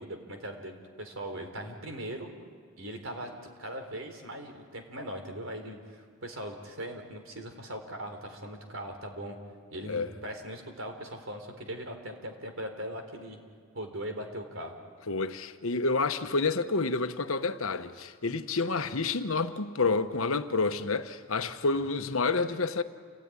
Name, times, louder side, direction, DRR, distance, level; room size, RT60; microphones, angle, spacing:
voice 1, 0.0-2.3 2.8-9.4 9.7-13.4 13.7-14.8 21.7-21.8, right 1 dB, 70° right, 3.7 m, -40 dB
voice 2, 15.1-22.8, left 3 dB, 75° left, 1.1 m, -29 dB
28.5 x 17.5 x 9.8 m
head